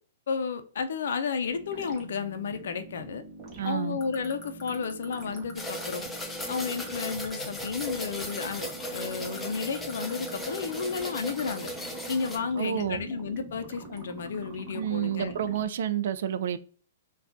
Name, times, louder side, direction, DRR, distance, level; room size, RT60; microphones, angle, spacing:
voice 1, 0.3-3.2 3.6-6.0 6.5-11.7 12.1-15.4, left 5 dB, 75° left, 0.5 m, -32 dB
sound 1, 1.5-15.7, right 2 dB, 25° right, 0.8 m, -45 dB
voice 2, 3.6-4.0 12.6-13.1 14.7-16.6, right 9 dB, 65° right, 0.3 m, -29 dB
sound 2, 4.0-11.7, left 8 dB, 30° left, 1.4 m, -43 dB
sound 3, 5.5-12.4, equal, 5° left, 0.6 m, -37 dB
3.5 x 2.3 x 2.6 m
hypercardioid pair, 145°, 0 cm